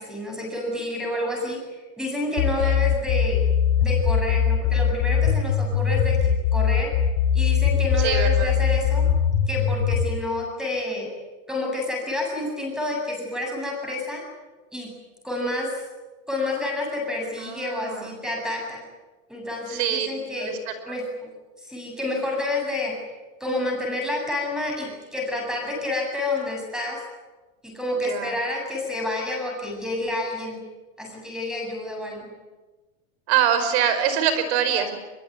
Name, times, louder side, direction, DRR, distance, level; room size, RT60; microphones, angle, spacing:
voice 1, 0.0-3.4 3.8-6.9 7.3-9.1 9.5-11.1 11.5-14.2 14.7-14.9 15.2-15.8 16.3-18.8 19.3-20.6 20.8-21.0 21.6-22.9 23.4-27.0 27.6-30.6 31.0-32.3, left 2 dB, ahead, 1 dB, 8.0 m, -29 dB
sound 1, 2.4-10.0, left 8 dB, 60° left, 6.7 m, -21 dB
voice 2, 8.0-8.5 17.4-18.1 19.7-20.1 20.4-20.7 28.0-28.3 33.3-35.0, right 8 dB, 55° right, 10 dB, 5.2 m, -24 dB
23.5 x 22.5 x 9.6 m, 1.2 s
supercardioid pair, 160°, 40 cm